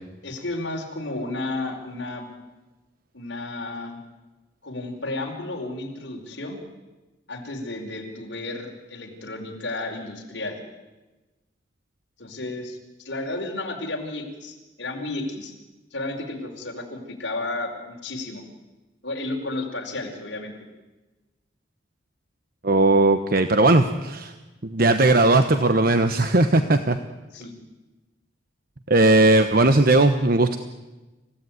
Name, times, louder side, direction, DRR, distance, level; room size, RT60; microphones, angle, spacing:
voice 1, 0.2-2.3 3.1-4.0 4.6-6.6 7.3-10.6 12.2-15.5 15.9-18.4 19.0-20.5 27.3-27.5, left 2 dB, 65° left, 0 dB, 4.9 m, -32 dB
voice 2, 22.6-24.3 24.6-27.0 28.9-30.6, right 2 dB, 50° right, 9 dB, 1.0 m, -18 dB
27.5 x 16.5 x 9.4 m, 1.1 s
head